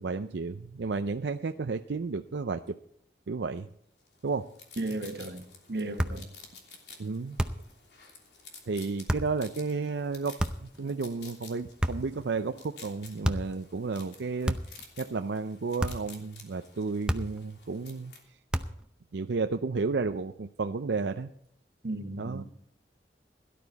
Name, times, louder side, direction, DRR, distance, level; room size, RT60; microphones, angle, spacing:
voice 1, 0.0-2.8 3.3-3.7 4.2-4.5 7.0-7.4 8.7-14.6 15.0-18.1 19.1-21.3 22.2-22.4, right 4 dB, 85° right, 0.5 m, -32 dB
sound 1, 4.1-18.2, left 5 dB, 75° left, 3.1 m, -52 dB
voice 2, 4.8-5.4 5.7-6.3 21.8-22.4, right 2 dB, 65° right, 1.4 m, -34 dB
sound 2, 6.0-6.3 7.4-7.7 9.1-9.4 10.4-10.8 11.8-12.2 13.2-13.6 14.4-14.9 15.8-16.1 17.1-17.5 18.5-18.9, equal, 5° right, 0.6 m, -31 dB
17.0 x 11.5 x 4.1 m
head